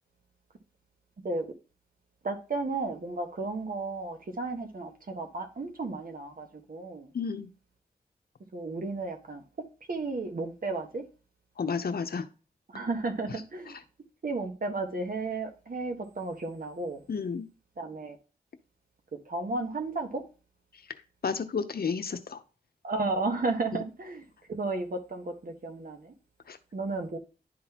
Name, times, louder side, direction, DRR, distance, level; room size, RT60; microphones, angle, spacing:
voice 1, 2.2-7.1 8.5-9.4 9.9-11.1 12.7-13.7 14.2-17.0 17.8-18.2 19.3-20.2 22.8-24.2 24.5-26.1 26.7-27.2, right 3 dB, 55° right, 1.5 m, -33 dB
voice 2, 7.1-7.5 11.6-12.2 17.1-17.5 21.2-22.4 26.5-26.6, left 5 dB, 65° left, 0.8 m, -31 dB
11.0 x 3.9 x 3.0 m
cardioid pair, 45°, 17 cm